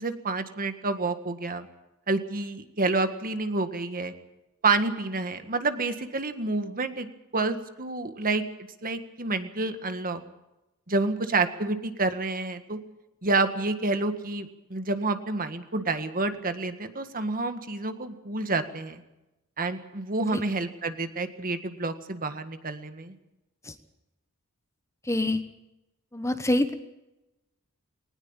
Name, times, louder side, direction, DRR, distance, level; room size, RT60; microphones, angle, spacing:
voice 1, 0.0-1.7 2.1-4.1 4.6-7.1 7.3-8.4 8.8-10.2 10.9-12.8 13.2-19.0 19.6-23.1, right 3 dB, 40° right, 9 dB, 1.7 m, -28 dB
voice 2, 25.1-25.4 26.1-26.7, left 1 dB, 15° left, 9 dB, 1.2 m, -25 dB
20.5 x 19.5 x 7.3 m, 0.96 s
head